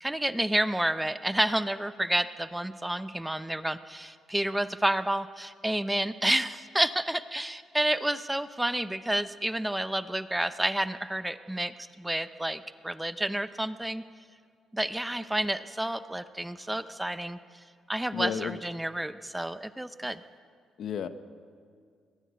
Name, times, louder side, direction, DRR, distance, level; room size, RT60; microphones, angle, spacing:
voice 1, 0.0-14.0 14.7-17.4 17.9-20.2, right 1 dB, 5° right, 13 dB, 0.7 m, -30 dB
voice 2, 18.1-18.6 20.8-21.1, left 7 dB, 65° left, 11 dB, 1.0 m, -32 dB
21.0 x 14.0 x 9.4 m, 2.1 s
cardioid pair, 90°, 0 cm